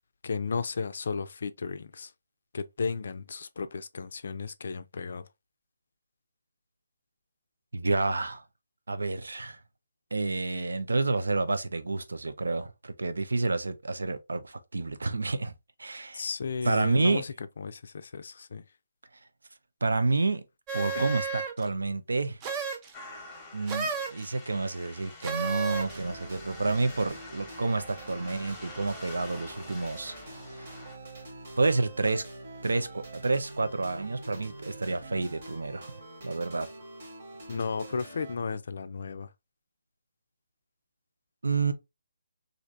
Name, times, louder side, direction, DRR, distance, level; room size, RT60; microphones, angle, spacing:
voice 1, 0.2-2.1 2.5-5.2 16.1-18.6 20.9-21.1 37.5-39.3, left 5 dB, 60° left, 0.4 m, -34 dB
voice 2, 7.7-8.4 8.9-9.6 10.1-15.5 15.8-16.2 16.6-17.2 19.8-20.4 20.7-22.4 23.5-30.7 31.6-32.2 32.6-35.9 36.2-36.7 41.4-41.7, right 3 dB, 75° right, 0.5 m, -29 dB
sound 1, 20.7-21.7 22.4-22.9 23.7-24.3 25.2-26.0, right 5 dB, 20° right, 0.4 m, -32 dB
sound 2, 22.9-31.0, left 2 dB, 10° left, 0.9 m, -47 dB
sound 3, 25.7-38.4, right 2 dB, 50° right, 1.2 m, -45 dB
3.2 x 2.5 x 2.5 m
figure-of-eight pair, 150°, 0 cm